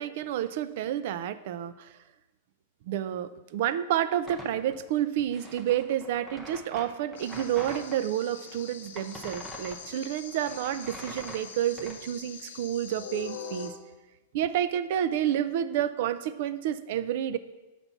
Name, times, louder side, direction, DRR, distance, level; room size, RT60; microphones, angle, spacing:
voice 1, 0.0-1.9 2.9-13.7 14.3-17.4, right 11 dB, 45° right, 14 dB, 0.3 m, -30 dB
sound 1, 4.2-8.0 8.4-12.0, equal, 10° right, 0.6 m, -44 dB
sound 2, 7.2-13.7, left 7 dB, 85° left, 0.8 m, -43 dB
5.8 x 4.1 x 5.5 m, 1.1 s
supercardioid pair, 170°, 0 cm